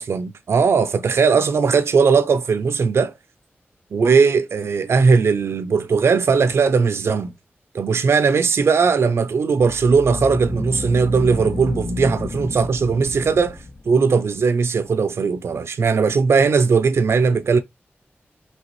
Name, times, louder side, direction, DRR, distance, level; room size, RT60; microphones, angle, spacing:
voice 1, 0.0-3.1 3.9-7.3 7.7-17.6, right 5 dB, 80° right, 0.4 m, -18 dB
sound 1, 9.6-14.0, left 2 dB, 75° left, 2.8 m, -30 dB
5.2 x 3.2 x 3.1 m
wide cardioid pair, 90°, 4 cm